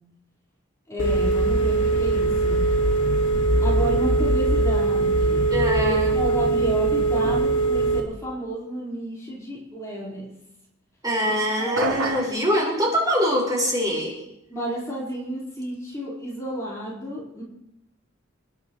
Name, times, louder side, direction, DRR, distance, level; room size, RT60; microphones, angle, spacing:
voice 1, 0.9-2.6 3.6-5.5 5.8-10.3 11.2-11.8 14.5-17.4, right 1 dB, 15° left, -6 dB, 4.5 m, -31 dB
Telephone, 1.0-8.0, right 2 dB, 65° left, 3.1 m, -21 dB
voice 2, 5.5-6.1 11.0-14.2, equal, 20° right, -3 dB, 5.0 m, -23 dB
sound 1, 11.8-12.4, right 3 dB, 80° right, 5.6 m, -26 dB
28.5 x 11.0 x 3.2 m, 0.85 s
head